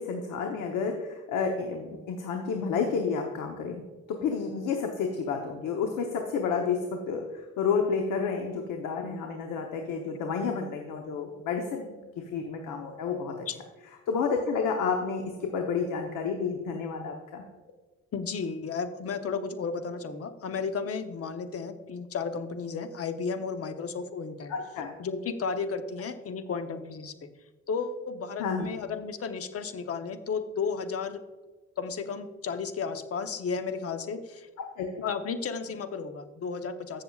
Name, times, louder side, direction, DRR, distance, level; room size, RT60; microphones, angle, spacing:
voice 1, 0.0-3.8 4.1-13.5 14.1-17.4 24.5-24.9 28.4-28.7 34.6-35.0, left 5 dB, 90° left, 3 dB, 1.0 m, -30 dB
voice 2, 18.1-24.5 25.0-27.3 27.7-31.2 31.8-34.5 35.0-37.0, left 5 dB, 50° left, 9 dB, 0.9 m, -33 dB
15.5 x 6.7 x 2.4 m, 1.2 s
cardioid pair, 90°, 30 cm